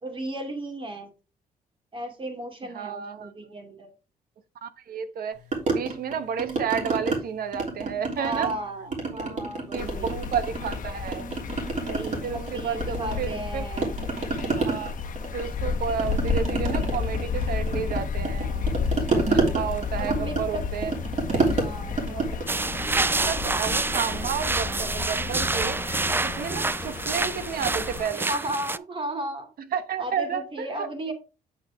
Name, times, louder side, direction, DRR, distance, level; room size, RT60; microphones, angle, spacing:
voice 1, 0.0-1.1 1.9-3.9 8.2-10.1 11.9-13.9 18.4-18.7 20.0-20.6 21.6-23.1 28.1-29.5 30.0-31.1, right 1 dB, 30° right, 2.7 m, -35 dB
voice 2, 2.7-3.5 4.6-8.5 9.1-9.2 9.7-11.3 12.2-13.7 14.5-14.9 15.3-18.5 18.9-20.9 23.2-28.3 29.7-30.9, right 7 dB, 65° right, 1.1 m, -31 dB
sound 1, 5.5-7.2 7.5-8.6 8.9-10.8 11.1-13.5 13.8-23.6, right 3 dB, 45° right, 3.3 m, -29 dB
sound 2, 9.8-28.0, left 5 dB, 55° left, 1.0 m, -32 dB
sound 3, 22.5-28.8, right 3 dB, 15° right, 0.4 m, -27 dB
8.3 x 5.9 x 3.5 m
cardioid pair, 80°, 16 cm